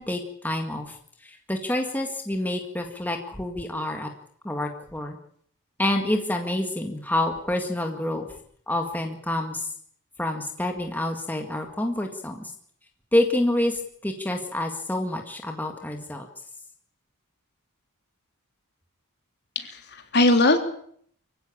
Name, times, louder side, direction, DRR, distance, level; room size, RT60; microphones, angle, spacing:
voice 1, 0.0-4.1 4.4-5.2 5.8-8.4 8.7-9.7 10.2-12.5 13.1-16.3, left 1 dB, 10° left, 3 dB, 1.9 m, -28 dB
voice 2, 19.5-20.6, left 2 dB, 50° left, 5 dB, 3.4 m, -20 dB
25.0 x 16.0 x 8.6 m, 0.64 s
head